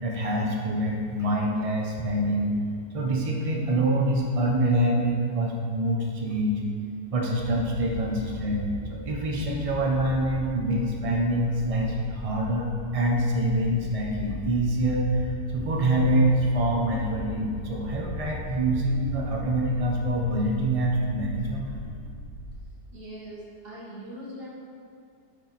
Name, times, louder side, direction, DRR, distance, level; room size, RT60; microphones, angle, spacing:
voice 1, 0.0-2.5 2.9-6.6 7.1-15.3 15.5-21.9, right 1 dB, 65° right, -1 dB, 0.3 m, -25 dB
sound 1, 7.3-22.6, left 2 dB, 20° left, 0.8 m, -39 dB
voice 2, 22.9-24.5, equal, 35° right, -6 dB, 1.7 m, -41 dB
11.0 x 4.6 x 4.1 m, 2.3 s
omnidirectional pair, 2.0 m